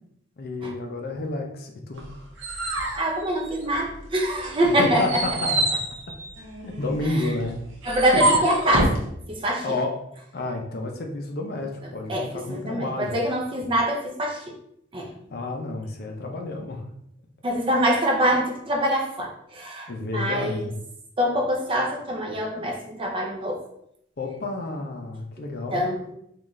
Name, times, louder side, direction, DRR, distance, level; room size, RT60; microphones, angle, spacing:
voice 1, 0.4-2.1 4.8-5.8 6.6-7.6 8.1-8.2 9.6-9.9 10.3-13.1 15.3-16.8 19.9-20.8 24.2-25.9, left 2 dB, 50° left, 3 dB, 0.5 m, -30 dB
sound 1, 2.0-4.0 4.4-9.0, right 1 dB, 80° right, 0.8 m, -27 dB
voice 2, 3.0-5.2 7.9-8.9 9.3-9.6 12.1-14.4 14.9-15.1 17.4-20.6 21.2-23.6 25.7-26.1, equal, 25° right, 1 dB, 0.5 m, -24 dB
3.9 x 2.4 x 3.1 m, 0.75 s
head